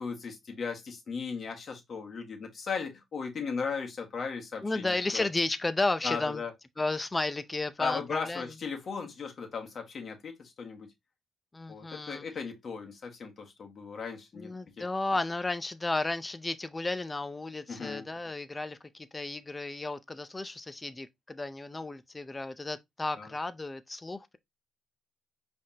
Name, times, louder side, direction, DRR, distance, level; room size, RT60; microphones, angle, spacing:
voice 1, 0.0-5.3 6.0-6.5 7.8-10.9 11.7-14.5 14.8-14.9 17.7-18.1 23.2-23.3, left 5 dB, 50° left, 1.5 m, -37 dB
voice 2, 4.6-6.4 6.8-8.5 11.5-12.2 14.3-24.4, left 2 dB, 20° left, 0.6 m, -33 dB
5.4 x 3.5 x 2.8 m
cardioid pair, 90°, 0 cm